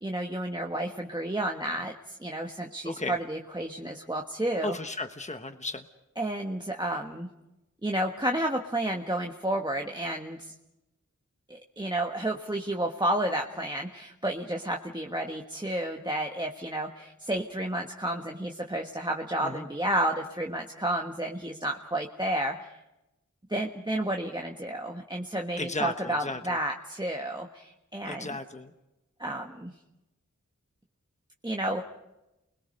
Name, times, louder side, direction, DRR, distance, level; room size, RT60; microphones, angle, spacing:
voice 1, 0.0-4.7 6.2-7.3 7.8-10.5 11.5-22.8 23.5-28.4 29.2-29.7 31.4-31.8, right 1 dB, 15° right, 1 dB, 1.4 m, -31 dB
voice 2, 2.8-3.2 4.6-5.9 19.4-19.7 25.6-26.6 28.0-28.7, left 2 dB, 25° left, 7 dB, 1.2 m, -35 dB
29.5 x 21.0 x 5.3 m, 0.95 s
wide cardioid pair, 55°, 30 cm